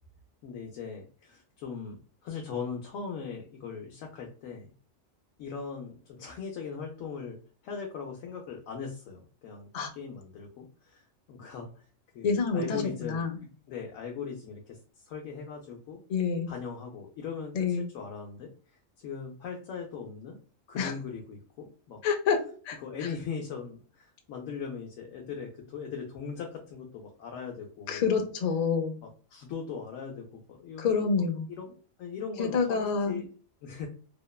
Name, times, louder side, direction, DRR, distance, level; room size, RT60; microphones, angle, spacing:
voice 1, 0.4-4.7 5.4-7.4 7.6-11.8 12.1-13.3 13.7-14.8 15.0-16.0 16.5-20.4 20.7-22.0 22.8-28.2 29.0-31.1 31.5-33.3 33.6-33.9, left 6 dB, 85° left, 1 dB, 1.0 m, -40 dB
voice 2, 12.2-13.4 16.1-16.5 17.5-17.9 20.8-20.9 22.0-22.8 27.9-29.0 30.8-31.5 32.4-33.2, left 5 dB, 65° left, 3 dB, 0.4 m, -28 dB
2.8 x 2.1 x 2.2 m, 0.41 s
omnidirectional pair, 1.3 m